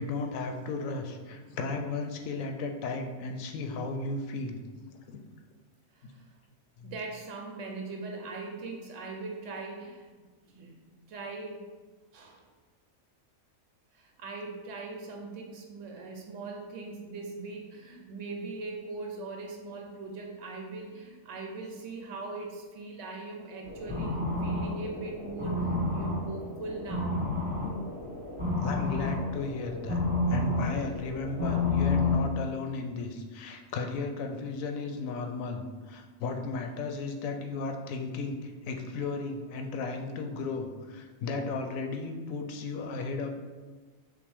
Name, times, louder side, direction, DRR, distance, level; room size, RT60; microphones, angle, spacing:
voice 1, 0.0-4.6 5.1-5.2 6.8-6.9 28.6-43.3, left 3 dB, 85° left, 4 dB, 1.0 m, -35 dB
voice 2, 5.9-6.3 6.8-10.1 10.5-10.8 11.1-11.7 12.1-12.5 13.9-27.2, right 3 dB, 75° right, 2 dB, 0.9 m, -40 dB
sound 1, 23.6-32.3, left 2 dB, 10° right, 0.8 m, -30 dB
5.7 x 2.1 x 3.4 m, 1.4 s
omnidirectional pair, 1.4 m